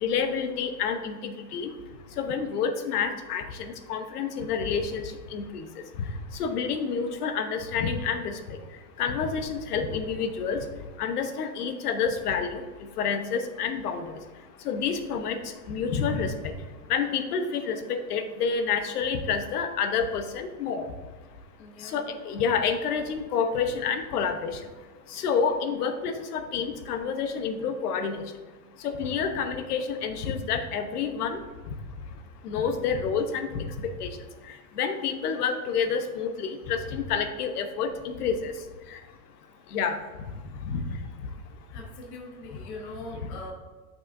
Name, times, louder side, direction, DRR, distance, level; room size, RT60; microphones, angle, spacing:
voice 1, 0.0-1.7 2.2-5.0 5.3-6.1 6.4-8.6 9.0-10.6 11.0-12.6 13.0-14.1 14.6-16.5 16.9-20.9 21.8-24.6 25.1-28.2 28.8-31.4 32.4-34.2 34.8-38.5 38.9-39.0 39.7-40.0 40.7-40.8, left 6 dB, 75° left, 7 dB, 1.0 m, -28 dB
voice 2, 21.6-22.2 38.9-39.0 40.9-41.0 41.7-43.5, left 2 dB, 20° left, 0 dB, 0.5 m, -42 dB
9.6 x 5.9 x 2.6 m, 1.4 s
supercardioid pair, 175°, 46 cm